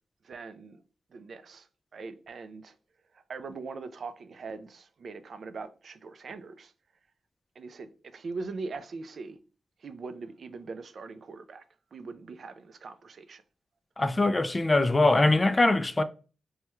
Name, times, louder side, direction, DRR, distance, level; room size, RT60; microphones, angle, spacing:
voice 1, 0.2-0.8 1.1-1.7 1.9-2.7 3.3-6.7 7.6-9.4 9.8-11.6 11.9-13.4, right 4 dB, 60° right, 0.4 m, -41 dB
voice 2, 14.0-16.0, left 2 dB, 20° left, 0.3 m, -22 dB
3.2 x 2.2 x 2.9 m
cardioid pair, 95°, 0 cm